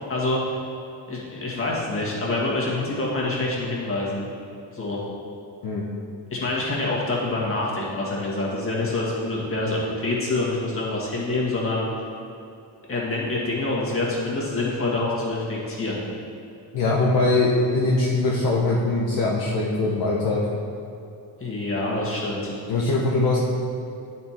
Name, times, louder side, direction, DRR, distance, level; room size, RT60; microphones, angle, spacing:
voice 1, 0.1-0.4 1.1-4.2 4.7-5.0 6.3-11.9 12.9-16.0 21.4-22.5, left 2 dB, 30° left, -4 dB, 1.8 m, -26 dB
voice 2, 16.7-20.4 22.7-23.4, left 2 dB, 55° left, -4 dB, 1.0 m, -22 dB
9.1 x 4.4 x 4.4 m, 2.6 s
cardioid pair, 115°, 44 cm